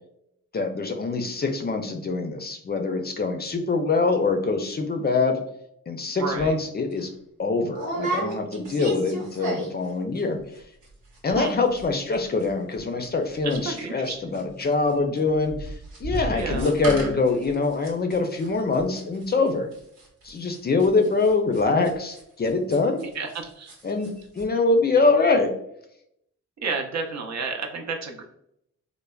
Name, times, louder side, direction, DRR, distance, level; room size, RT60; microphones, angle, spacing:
voice 1, 0.5-5.4 5.9-7.1 7.4-10.4 11.2-19.7 20.2-23.0 23.8-25.5, left 3 dB, 30° left, 5 dB, 0.4 m, -24 dB
voice 2, 6.2-6.6 11.3-11.5 13.4-14.4 16.3-16.7 23.1-23.7 26.6-28.2, right 4 dB, 55° right, 3 dB, 0.6 m, -31 dB
sound 1, 6.4-6.5 6.9-7.1 7.7-9.9 10.2-10.6 10.8-10.9 11.1-11.5 11.8-14.1 14.3-23.4 23.7-24.1 24.4-24.5, right 2 dB, 80° right, 0.9 m, -34 dB
3.2 x 2.1 x 2.3 m, 0.74 s
supercardioid pair, 60°, 32 cm